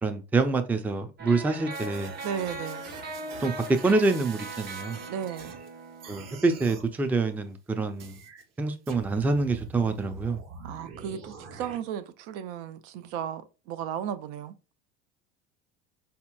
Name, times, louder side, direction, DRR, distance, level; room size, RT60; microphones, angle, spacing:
voice 1, 0.0-2.1 3.4-5.0 6.1-8.2 8.6-10.4, right 3 dB, 5° right, 0.4 m, -26 dB
sound 1, 1.2-6.9, right 2 dB, 30° right, 0.9 m, -40 dB
sound 2, 1.7-5.7 6.0-6.9 8.0-8.4 8.9-11.8, right 4 dB, 45° right, 1.2 m, -45 dB
voice 2, 2.2-2.8 5.1-5.5 10.6-14.5, right 8 dB, 70° right, 0.6 m, -35 dB
4.2 x 2.8 x 2.3 m
supercardioid pair, 95°, 34 cm